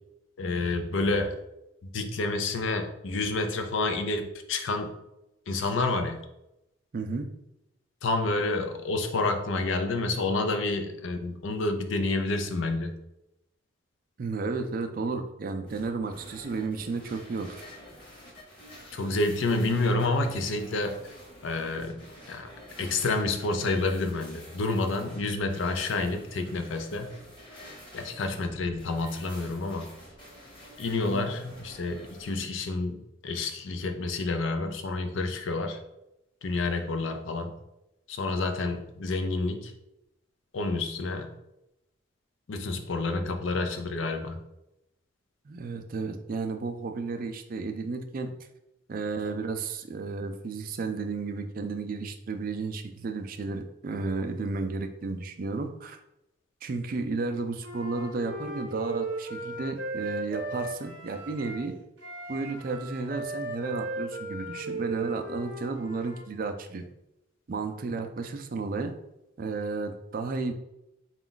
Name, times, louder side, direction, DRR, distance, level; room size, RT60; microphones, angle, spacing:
voice 1, 0.4-1.4 1.9-4.9 5.5-6.2 8.0-12.9 18.9-21.0 21.4-22.5 22.8-27.1 27.9-29.9 30.8-35.8 36.4-37.5 38.1-39.7 40.5-41.3 42.5-44.4, left 3 dB, 70° left, 7 dB, 0.5 m, -29 dB
voice 2, 6.9-7.3 14.2-17.6 31.1-31.4 45.5-48.3 48.9-56.0 56.6-61.7 62.3-66.9 67.5-68.9 69.4-70.5, right 4 dB, 45° right, 6 dB, 0.4 m, -33 dB
sound 1, 15.7-32.4, equal, 25° left, 1.0 m, -49 dB
Wind instrument woodwind instrument, 57.6-61.7 62.0-66.2, right 2 dB, 65° right, 0.8 m, -36 dB
4.0 x 2.3 x 3.8 m, 0.88 s
head